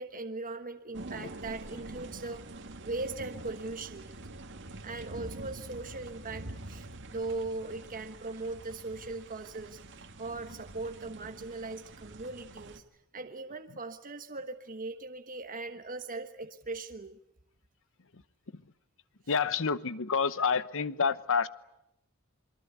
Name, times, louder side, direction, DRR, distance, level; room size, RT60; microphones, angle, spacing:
voice 1, 0.0-2.4 2.8-4.1 4.8-12.8 13.1-17.2, right 3 dB, 40° right, 6 dB, 1.3 m, -39 dB
sound 1, 0.9-12.8, right 2 dB, 55° right, 2.1 m, -46 dB
voice 2, 19.3-21.5, left 5 dB, 65° left, 15 dB, 1.0 m, -29 dB
27.5 x 23.5 x 8.3 m, 0.83 s
head